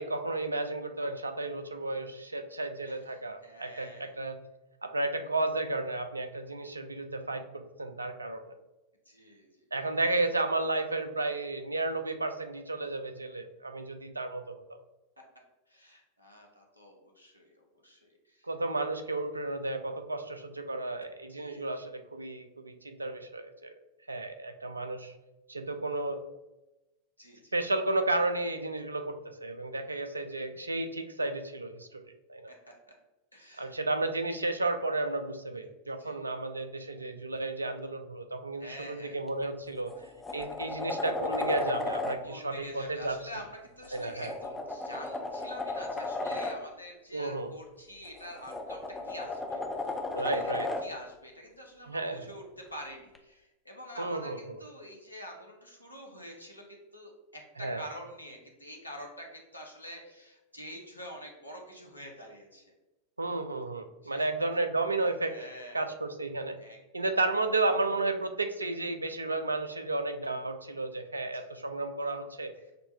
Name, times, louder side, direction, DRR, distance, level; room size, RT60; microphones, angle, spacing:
voice 1, 0.0-4.4 4.8-8.4 9.7-14.6 18.5-23.7 24.1-25.1 25.5-26.2 27.5-32.0 32.3-32.5 33.6-39.9 40.3-43.2 43.9-44.3 47.1-47.5 50.1-50.7 51.8-52.3 54.0-54.6 57.6-57.8 63.2-65.4 65.7-66.6 66.9-72.5, right 2 dB, 80° right, 8 dB, 0.4 m, -32 dB
voice 2, 2.9-4.2 9.1-9.7 15.7-18.5 21.3-21.6 27.2-27.5 32.5-32.9 33.3-33.7 36.0-36.2 38.6-39.2 42.2-50.4 50.8-56.6 56.9-62.7 64.0-64.5 65.2-65.9 66.6-67.1 71.3-71.5 72.6-72.7, equal, 85° left, 1 dB, 0.7 m, -47 dB
sound 1, 39.3-39.4 39.9-42.2 43.8-46.6 48.1-50.9 53.2-53.3, left 2 dB, 10° left, 0.5 m, -34 dB
6.5 x 2.2 x 2.7 m, 1.0 s
figure-of-eight pair, 90°, 0 cm